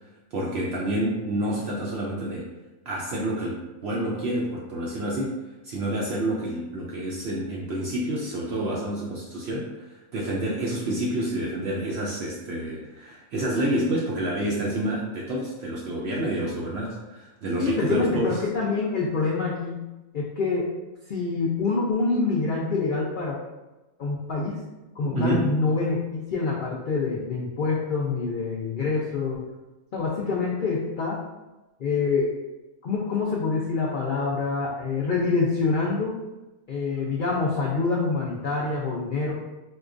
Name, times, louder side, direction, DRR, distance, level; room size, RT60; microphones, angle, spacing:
voice 1, 0.3-2.5 2.9-5.4 5.6-18.4 25.1-25.5, right 1 dB, 65° right, -3 dB, 0.6 m, -28 dB
voice 2, 17.6-19.8 20.1-20.7 21.1-23.4 24.0-24.6 25.0-26.0 26.3-29.4 29.9-31.2 31.8-32.3 32.8-36.1 36.7-39.3, left 4 dB, 70° left, -4 dB, 0.4 m, -26 dB
4.4 x 2.3 x 2.5 m, 1.0 s
omnidirectional pair, 1.5 m